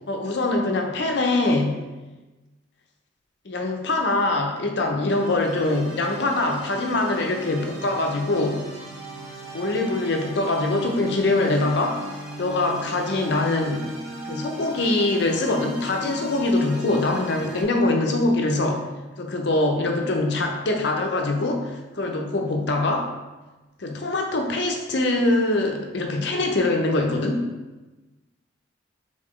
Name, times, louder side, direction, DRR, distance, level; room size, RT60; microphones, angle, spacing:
voice 1, 0.1-1.8 3.5-8.6 9.5-12.1 12.4-13.9 14.2-18.8 19.2-23.1 23.8-27.4, left 2 dB, 60° left, 3 dB, 0.6 m, -23 dB
sound 1, 5.1-17.6, right 1 dB, 15° right, 1.3 m, -38 dB
4.1 x 3.7 x 3.1 m, 1.1 s
head